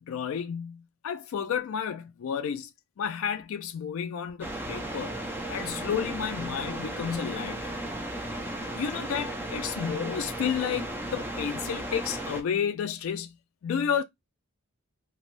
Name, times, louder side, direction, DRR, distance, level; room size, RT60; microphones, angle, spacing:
voice 1, 0.0-2.7 3.0-5.2 5.5-7.7 8.6-13.4 13.6-14.0, left 7 dB, 70° left, 0.3 m, -31 dB
sound 1, 4.4-12.4, right 1 dB, 10° right, 0.4 m, -35 dB
3.1 x 2.2 x 2.5 m
head